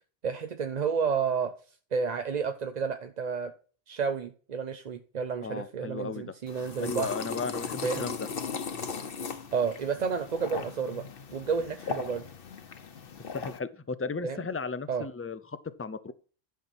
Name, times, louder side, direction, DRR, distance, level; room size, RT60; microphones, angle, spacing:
voice 1, 0.2-1.5 1.9-3.5 3.9-7.1 7.8-8.1 9.5-11.0 11.3-12.3 14.2-14.4 14.9-15.1, right 6 dB, 45° right, 0.7 m, -31 dB
voice 2, 5.4-6.4 6.8-8.3 13.3-16.1, left 4 dB, 25° left, 0.3 m, -35 dB
sound 1, 6.5-13.6, left 5 dB, 60° left, 1.1 m, -38 dB
11.5 x 5.9 x 4.3 m
omnidirectional pair, 1.1 m